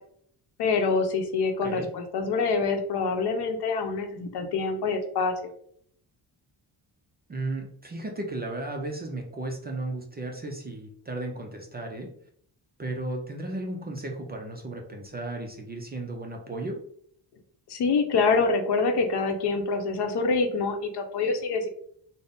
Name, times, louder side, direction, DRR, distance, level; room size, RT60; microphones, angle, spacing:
voice 1, 0.6-5.5 17.7-21.7, left 4 dB, 65° left, 5 dB, 0.7 m, -26 dB
voice 2, 1.6-1.9 7.3-12.1 12.8-16.8, right 2 dB, 25° right, 2 dB, 0.3 m, -34 dB
3.9 x 2.0 x 3.4 m, 0.64 s
cardioid pair, 150°, 43 cm